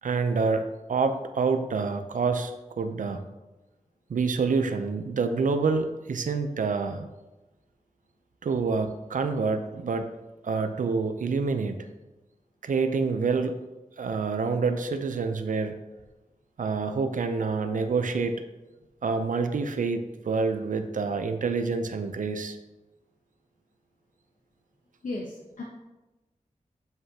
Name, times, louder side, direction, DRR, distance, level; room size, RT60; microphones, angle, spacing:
voice 1, 0.0-3.2 4.1-7.1 8.4-10.1 10.4-11.9 12.6-13.6 14.0-15.8 16.6-18.4 19.0-22.6, right 4 dB, 80° right, 8 dB, 0.5 m, -27 dB
voice 2, 25.0-25.6, left 2 dB, 75° left, -2 dB, 0.9 m, -35 dB
7.6 x 5.5 x 2.8 m, 1.1 s
wide cardioid pair, 85°, 13 cm